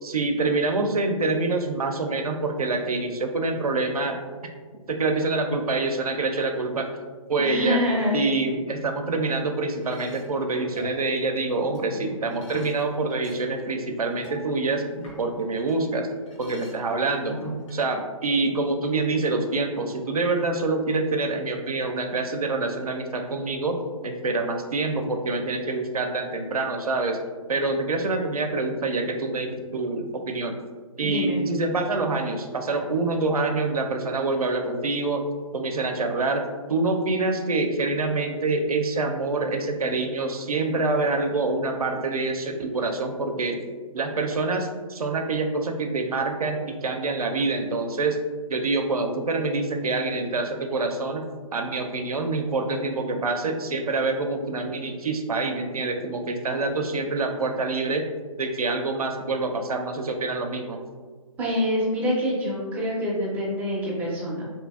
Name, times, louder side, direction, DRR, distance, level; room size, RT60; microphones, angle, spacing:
voice 1, 0.0-4.2 4.9-6.9 7.3-7.8 8.1-16.1 16.4-17.4 17.7-23.8 24.0-27.2 27.5-30.6 31.0-35.2 35.5-36.4 36.7-43.6 43.9-48.2 48.5-51.3 51.5-58.0 58.4-60.8, right 3 dB, 85° right, 4 dB, 0.4 m, -26 dB
voice 2, 7.4-8.2 31.0-31.4 61.4-64.4, left 1 dB, 10° right, -5 dB, 0.4 m, -26 dB
sound 1, 9.8-15.8 16.1-17.8, right 1 dB, 60° left, 1.0 m, -43 dB
2.7 x 2.5 x 2.3 m, 1.5 s
figure-of-eight pair, 135°, 18 cm